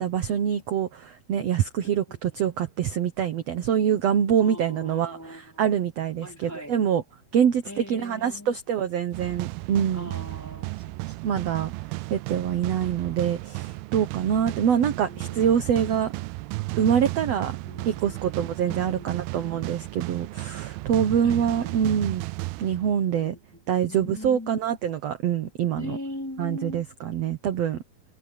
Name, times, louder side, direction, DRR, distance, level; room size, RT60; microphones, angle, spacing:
voice 1, 0.0-7.0 7.3-7.6 7.9-10.1 11.2-11.7 12.1-16.1 16.8-17.5 17.9-22.2 22.6-23.3 23.7-26.0 26.4-27.8, right 8 dB, 65° right, 1.7 m, -25 dB
voice 2, 4.4-5.6 6.2-6.8 7.6-8.6 9.9-11.2 14.4-15.6 17.3-19.5 21.2-21.8 23.2-23.4 23.7-24.6 25.8-26.9, left 1 dB, 5° left, 3.2 m, -41 dB
sound 1, 9.1-23.3, right 22 dB, 85° right, 2.4 m, -34 dB
omnidirectional pair, 4.4 m